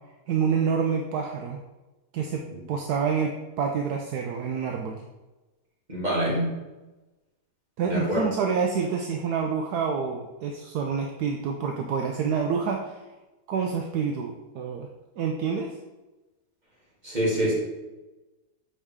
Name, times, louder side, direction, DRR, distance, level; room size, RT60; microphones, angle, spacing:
voice 1, 0.3-1.6 2.1-5.0 7.8-13.0 13.5-14.9 15.2-15.8, right 6 dB, 75° right, 2 dB, 1.1 m, -27 dB
voice 2, 5.9-6.5 7.8-8.2 17.0-17.5, equal, 25° right, -7 dB, 2.5 m, -25 dB
7.9 x 4.9 x 3.6 m, 1.1 s
omnidirectional pair, 1.8 m